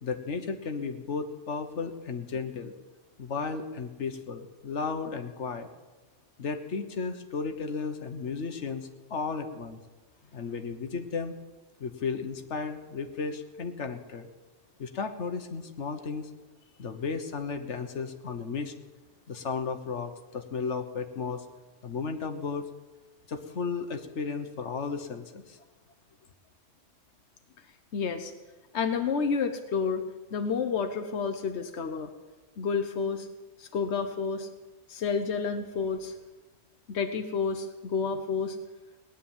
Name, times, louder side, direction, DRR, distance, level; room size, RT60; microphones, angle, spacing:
voice 1, 0.0-2.7 3.2-5.7 6.4-9.8 10.3-11.3 11.8-14.3 14.8-16.3 16.8-18.7 19.3-21.5 21.8-22.6 23.3-25.6, left 5 dB, 90° left, 7 dB, 1.5 m, -34 dB
voice 2, 27.9-28.3 28.7-30.0 30.3-32.1 32.6-33.3 33.6-34.5 34.9-36.1 36.9-38.6, left 5 dB, 75° left, 6 dB, 1.2 m, -30 dB
18.5 x 10.0 x 7.3 m, 1.2 s
omnidirectional pair, 1.2 m